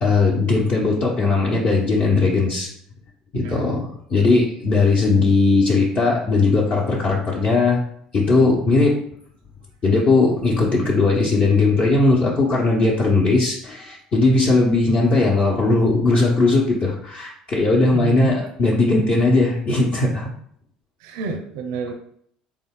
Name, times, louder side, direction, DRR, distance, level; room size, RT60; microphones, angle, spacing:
voice 1, 0.0-2.7 3.3-7.8 8.1-8.9 9.8-20.3, left 3 dB, 45° left, -4 dB, 0.9 m, -18 dB
voice 2, 17.9-18.3 21.0-21.9, right 6 dB, 80° right, 5 dB, 0.5 m, -29 dB
3.7 x 2.3 x 3.6 m, 0.64 s
hypercardioid pair, 70°, 3 cm